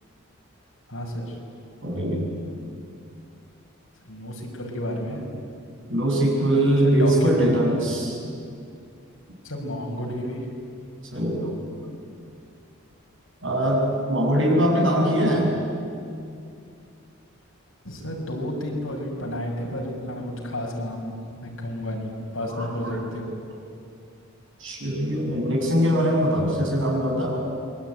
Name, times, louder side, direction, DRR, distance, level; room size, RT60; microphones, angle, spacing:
voice 1, 0.9-1.3 4.1-5.4 6.8-7.6 9.4-10.4 17.8-21.2 21.4-23.3, equal, 70° left, 0 dB, 6.0 m, -31 dB
voice 2, 1.8-2.3 5.9-8.2 11.1-11.6 13.4-15.6 22.4-23.0 24.6-27.4, equal, 60° right, -1 dB, 7.5 m, -22 dB
27.5 x 22.5 x 9.3 m, 2.4 s
head